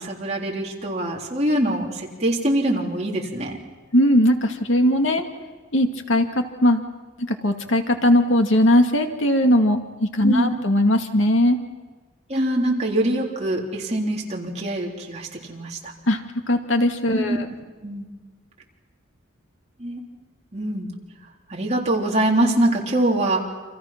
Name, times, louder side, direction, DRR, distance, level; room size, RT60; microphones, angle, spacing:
voice 1, 0.0-3.6 10.3-10.5 12.3-15.9 17.1-17.4 17.8-18.1 19.8-20.0 20.5-20.9 21.5-23.5, right 1 dB, 35° right, -1 dB, 3.6 m, -24 dB
voice 2, 3.9-5.2 5.7-6.8 7.3-11.6 16.1-16.2 16.5-17.5, left 1 dB, 75° left, 5 dB, 2.2 m, -19 dB
29.0 x 27.0 x 6.0 m, 1.4 s
head